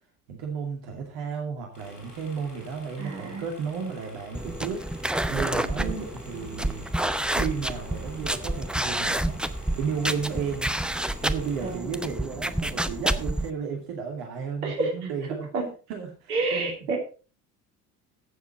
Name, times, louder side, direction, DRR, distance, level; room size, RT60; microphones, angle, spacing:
voice 1, 0.3-4.8 5.3-5.9 6.3-6.9 7.3-9.4 9.7-10.8 11.2-15.5 15.9-16.7, right 6 dB, 55° right, 1 dB, 2.5 m, -33 dB
sound 1, 1.7-11.8, left 1 dB, 90° left, 4.0 m, -48 dB
voice 2, 3.0-3.4 5.8-6.1 11.6-11.9 14.6-14.9 15.5-15.7 16.3-17.0, right 3 dB, 75° right, 1 dB, 3.3 m, -29 dB
sound 2, 4.3-13.5, right 1 dB, ahead, 0.7 m, -29 dB
15.5 x 7.2 x 4.3 m, 0.38 s
figure-of-eight pair, 60°, 46 cm